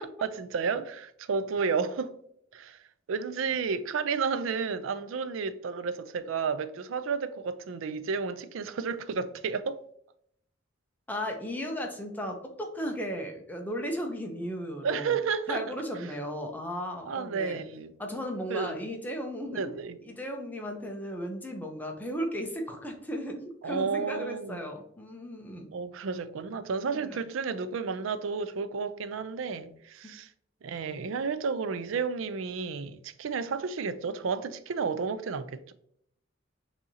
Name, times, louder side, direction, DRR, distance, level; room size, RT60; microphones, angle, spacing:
voice 1, 0.2-2.1 2.5-2.8 3.1-9.8 14.8-15.6 17.1-17.9 18.5-18.8 19.5-20.0 23.6-24.7 25.7-30.3 30.6-35.7, right 5 dB, 75° right, 0.4 m, -32 dB
voice 2, 11.1-15.2 15.5-17.6 18.0-19.6 20.0-25.7 26.9-27.1, equal, 10° left, 0.6 m, -35 dB
6.2 x 2.8 x 2.7 m
head